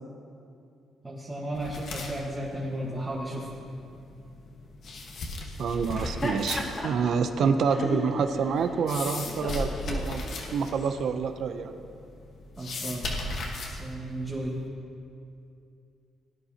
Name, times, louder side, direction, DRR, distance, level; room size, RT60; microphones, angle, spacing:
voice 1, 1.0-3.5 12.6-13.1 13.7-14.5, right 1 dB, 20° right, -4 dB, 1.5 m, -34 dB
sound 1, 1.5-14.7, left 2 dB, 65° left, 1.4 m, -38 dB
voice 2, 5.6-10.2 10.5-11.7, right 6 dB, 65° right, 8 dB, 0.7 m, -27 dB
Laughter, 5.8-11.0, left 2 dB, 35° left, 2.1 m, -36 dB
17.5 x 10.0 x 2.9 m, 2.5 s
cardioid pair, 90°, 0 cm